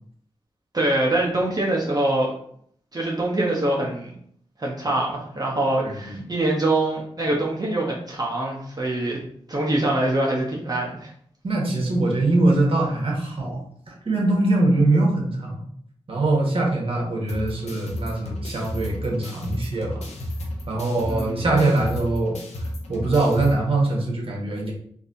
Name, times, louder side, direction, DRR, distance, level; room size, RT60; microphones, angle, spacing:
voice 1, 0.7-2.3 2.9-4.1 4.6-9.2 9.5-11.1 21.0-21.5, right 1 dB, 35° right, -3 dB, 0.9 m, -24 dB
voice 2, 5.8-6.2 11.4-13.6 13.9-15.6 16.1-20.0 20.7-22.4 22.9-24.7, right 2 dB, 55° right, -1 dB, 1.3 m, -22 dB
sound 1, 17.3-23.5, left 1 dB, 80° left, 0.8 m, -33 dB
4.0 x 2.7 x 2.6 m, 0.64 s
cardioid pair, 55°, 11 cm